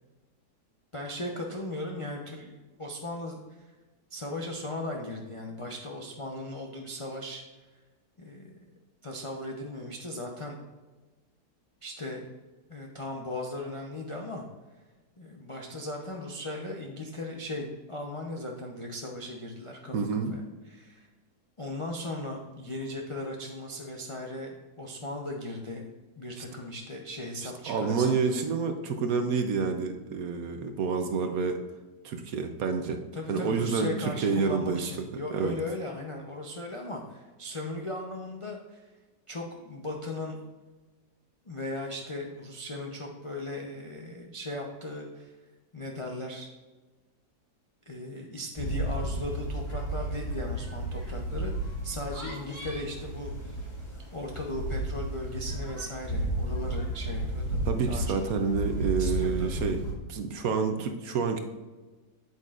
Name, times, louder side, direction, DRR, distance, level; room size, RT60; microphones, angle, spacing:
voice 1, 0.9-3.7 4.1-7.4 8.2-8.7 9.0-10.6 11.8-12.2 12.7-14.5 15.2-21.1 21.6-25.8 26.2-28.4 33.1-38.9 39.3-40.4 41.5-45.3 45.7-46.5 47.9-53.7 54.1-58.2 59.0-59.5, left 1 dB, 50° left, 0 dB, 0.3 m, -37 dB
voice 2, 19.9-20.3 26.4-26.5 27.4-31.6 32.0-33.0 33.3-34.8 35.3-35.5 57.7-59.8 60.1-61.4, right 5 dB, 65° right, 6 dB, 1.0 m, -28 dB
sound 1, 48.6-59.9, right 1 dB, 15° left, 1.7 m, -33 dB
8.4 x 8.2 x 2.5 m, 1.2 s
omnidirectional pair, 1.8 m